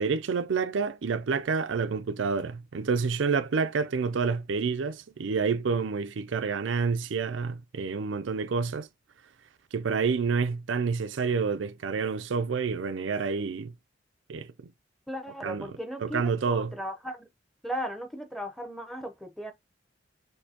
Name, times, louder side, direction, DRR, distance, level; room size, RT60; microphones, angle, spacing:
voice 1, 0.0-8.9 9.7-13.7 14.3-14.7 15.4-15.7 16.0-16.7, right 5 dB, 90° right, 0.5 m, -28 dB
voice 2, 15.1-17.3 17.6-19.5, equal, ahead, 0.7 m, -36 dB
6.4 x 2.7 x 2.8 m
head